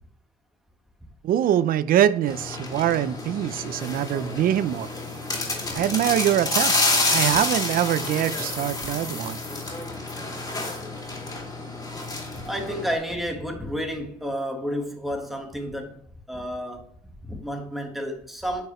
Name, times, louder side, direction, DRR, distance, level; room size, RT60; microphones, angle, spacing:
voice 1, 1.2-4.9 5.7-6.8 7.1-9.4, right 11 dB, 60° right, 0.5 m, -23 dB
sound 1, 2.3-13.0, left 2 dB, 20° left, 2.6 m, -29 dB
voice 2, 12.4-16.8 17.2-18.7, equal, ahead, 1.5 m, -31 dB
9.3 x 4.9 x 3.1 m
cardioid pair, 110°, 17 cm